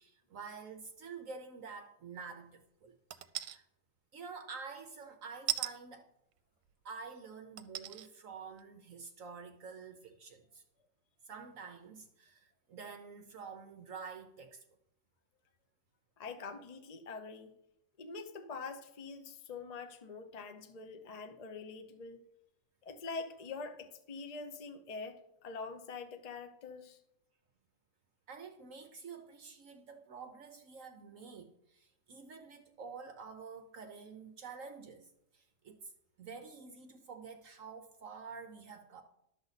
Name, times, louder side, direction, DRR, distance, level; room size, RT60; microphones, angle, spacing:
voice 1, 0.0-2.9 3.4-3.6 4.1-6.1 6.8-10.6 11.2-14.6 28.3-35.9 36.2-39.0, right 5 dB, 60° right, 0.9 m, -48 dB
sound 1, 3.1-3.6 5.5-5.7 6.7-6.8 7.6-8.1 8.6-8.7, right 15 dB, 80° right, 1.2 m, -36 dB
voice 2, 16.2-17.5 18.0-22.2 22.8-27.0, left 4 dB, 65° left, 0.4 m, -45 dB
11.5 x 7.1 x 4.0 m
omnidirectional pair, 1.9 m